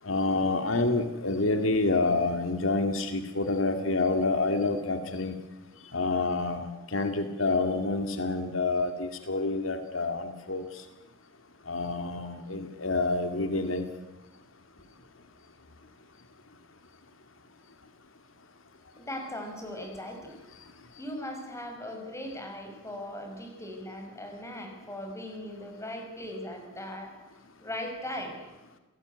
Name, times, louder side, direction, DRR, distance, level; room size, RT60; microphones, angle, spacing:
voice 1, 0.0-5.4 5.9-10.8 11.7-13.8, left 3 dB, 80° left, 7 dB, 2.2 m, -28 dB
voice 2, 19.0-20.4 21.0-27.1 27.6-28.4, left 1 dB, 15° left, 3 dB, 5.6 m, -39 dB
28.5 x 18.0 x 9.4 m, 1.0 s
head